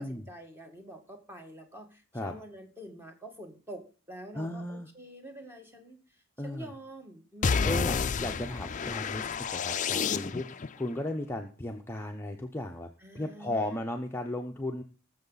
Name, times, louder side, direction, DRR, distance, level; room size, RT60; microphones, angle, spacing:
voice 1, 0.0-7.9 9.1-9.4 13.0-13.8, right 1 dB, 10° right, 4 dB, 1.9 m, -47 dB
voice 2, 4.3-4.9 6.4-6.7 7.6-9.3 9.5-12.9 13.1-14.8, left 1 dB, 10° left, 3 dB, 0.8 m, -35 dB
sound 1, 7.4-10.7, left 5 dB, 35° left, 0.5 m, -30 dB
20.0 x 7.1 x 4.0 m, 0.36 s
head